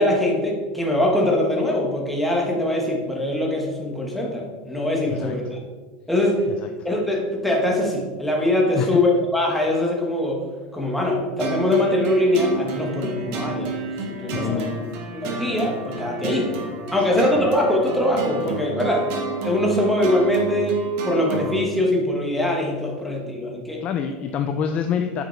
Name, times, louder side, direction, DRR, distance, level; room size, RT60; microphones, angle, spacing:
voice 1, 0.0-5.6 6.1-6.5 6.8-10.4 10.7-13.7 14.1-14.7 15.1-16.5 16.9-19.1 19.4-23.8, left 1 dB, ahead, -1 dB, 1.0 m, -22 dB
sound 1, 11.4-21.6, right 4 dB, 45° right, 1.2 m, -30 dB
voice 2, 14.3-14.8 16.9-17.5 23.8-25.2, left 7 dB, 25° left, 6 dB, 0.3 m, -27 dB
9.2 x 4.9 x 4.4 m, 1.4 s
supercardioid pair, 175°, 5 cm